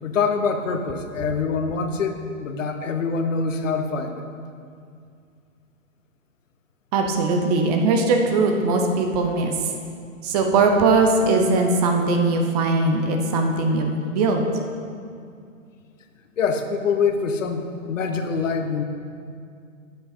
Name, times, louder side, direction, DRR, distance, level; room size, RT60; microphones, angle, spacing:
voice 1, 0.0-4.2 16.4-18.8, left 5 dB, 65° left, 7 dB, 1.0 m, -25 dB
voice 2, 6.9-9.7 10.2-14.5, right 3 dB, 30° right, 3 dB, 0.8 m, -20 dB
10.0 x 7.9 x 4.4 m, 2.3 s
hypercardioid pair, 135°, 41 cm